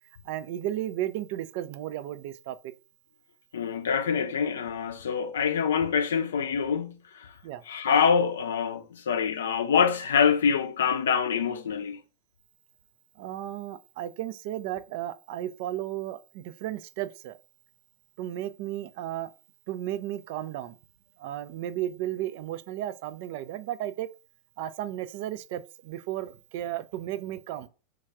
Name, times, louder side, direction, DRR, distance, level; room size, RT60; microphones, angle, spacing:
voice 1, 0.3-2.6 7.4-7.6 13.2-17.3 18.2-19.3 19.7-20.7 21.2-24.1 24.6-27.7, right 13 dB, 50° right, 0.3 m, -34 dB
voice 2, 3.5-7.3 7.6-12.0, left 7 dB, 65° left, 0.5 m, -25 dB
3.2 x 2.3 x 3.4 m
figure-of-eight pair, 90°, 0 cm